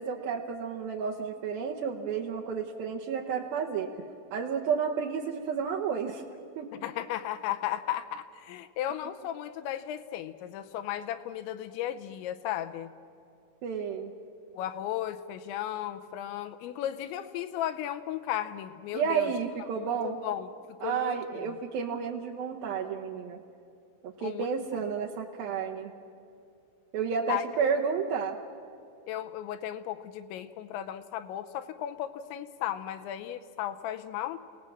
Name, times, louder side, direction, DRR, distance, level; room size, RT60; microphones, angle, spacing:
voice 1, 0.0-4.1 4.3-6.2 6.6-6.7 13.6-14.1 18.9-20.2 20.8-23.4 24.0-25.9 26.9-28.4, right 6 dB, 75° right, -1 dB, 2.2 m, -31 dB
voice 2, 6.8-12.9 14.6-19.3 19.8-21.6 24.2-24.5 27.3-27.4 29.1-34.4, left 12 dB, 80° left, 10 dB, 2.8 m, -35 dB
29.5 x 18.5 x 7.3 m, 2.5 s
omnidirectional pair, 5.6 m